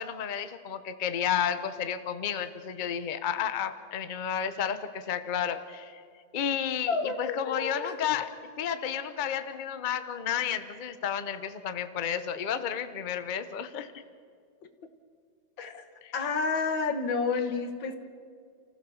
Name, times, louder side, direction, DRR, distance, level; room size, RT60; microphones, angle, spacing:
voice 1, 0.0-6.0 6.3-8.3 8.6-13.9 16.0-16.1, left 8 dB, 35° left, 10 dB, 0.8 m, -32 dB
voice 2, 6.9-8.0 15.6-15.9 16.1-18.0, left 4 dB, 85° left, 7 dB, 2.2 m, -30 dB
29.5 x 15.5 x 7.1 m, 2.2 s
omnidirectional pair, 2.0 m